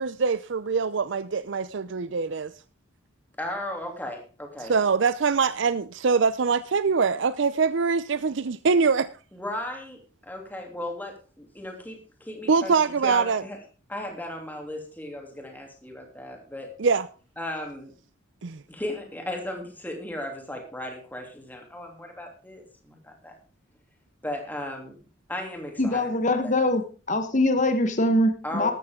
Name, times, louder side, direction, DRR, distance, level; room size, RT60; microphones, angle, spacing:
voice 1, 0.0-2.5 4.7-9.1 12.5-13.4 16.8-17.1 18.4-18.6, right 5 dB, 65° right, 0.5 m, -23 dB
voice 2, 3.4-4.7 9.3-12.7 13.0-13.6 13.9-16.7 17.4-17.9 18.7-23.3 24.2-25.0 25.3-26.7 28.4-28.7, left 1 dB, 10° left, 2.9 m, -36 dB
voice 3, 25.8-26.8 27.1-28.7, left 1 dB, 35° left, 1.3 m, -23 dB
13.0 x 13.0 x 3.7 m
head